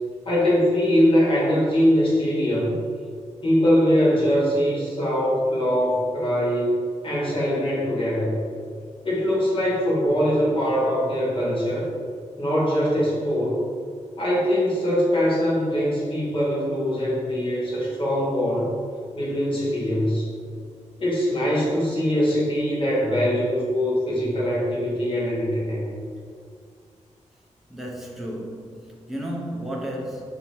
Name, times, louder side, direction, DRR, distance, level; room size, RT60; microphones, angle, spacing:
voice 1, 0.2-2.7 3.4-6.7 7.0-8.4 9.0-11.9 12.4-13.6 14.2-18.7 19.1-20.3 21.0-26.0, equal, 45° left, -7 dB, 1.3 m, -22 dB
voice 2, 27.7-30.3, equal, ahead, -3 dB, 0.5 m, -33 dB
5.0 x 2.8 x 2.9 m, 2.2 s
wide cardioid pair, 175°, 13 cm